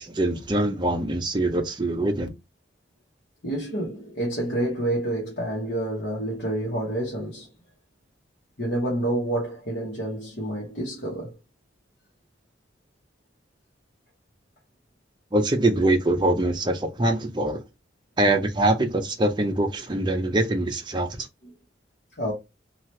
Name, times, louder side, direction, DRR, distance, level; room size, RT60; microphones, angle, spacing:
voice 1, 0.0-2.3 15.3-17.6 18.2-21.3, right 1 dB, 25° right, 0.5 m, -23 dB
voice 2, 3.4-7.5 8.6-11.4 21.4-21.5 22.2-22.3, right 1 dB, 65° left, 1.0 m, -28 dB
2.8 x 2.4 x 3.1 m
head